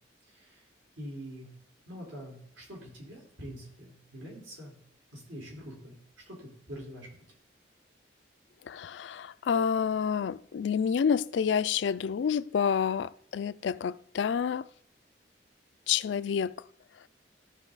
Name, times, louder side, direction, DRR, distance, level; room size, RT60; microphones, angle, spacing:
voice 1, 0.3-0.6 1.0-1.5 1.9-4.7 5.1-5.9 6.3-7.1, equal, 90° right, 4.3 m, -44 dB
voice 2, 8.7-14.6 15.9-16.6, left 7 dB, 75° left, 0.3 m, -28 dB
14.5 x 5.3 x 4.0 m
head